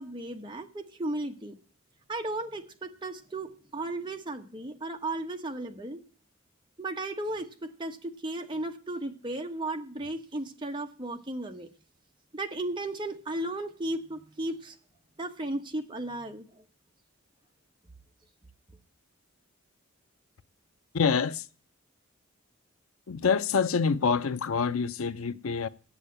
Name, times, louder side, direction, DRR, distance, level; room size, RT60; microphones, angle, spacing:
voice 1, 0.0-1.5 2.1-6.0 6.8-11.7 12.3-14.7 15.2-16.6, right 2 dB, 20° right, 1.1 m, -35 dB
voice 2, 20.9-21.5 23.1-25.7, left 5 dB, 85° left, 0.6 m, -26 dB
8.3 x 7.1 x 8.5 m
head